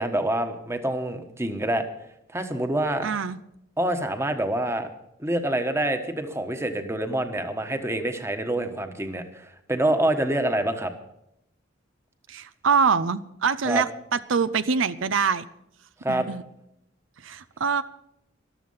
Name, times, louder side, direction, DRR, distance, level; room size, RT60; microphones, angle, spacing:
voice 1, 0.0-1.8 2.3-3.1 3.8-4.9 5.2-10.9 13.6-13.8 16.0-16.3, right 1 dB, 15° right, 7 dB, 1.3 m, -26 dB
voice 2, 3.0-3.4 12.3-15.5 16.1-16.4 17.2-17.8, right 5 dB, 85° right, 14 dB, 0.6 m, -24 dB
14.0 x 12.0 x 5.6 m, 0.79 s
head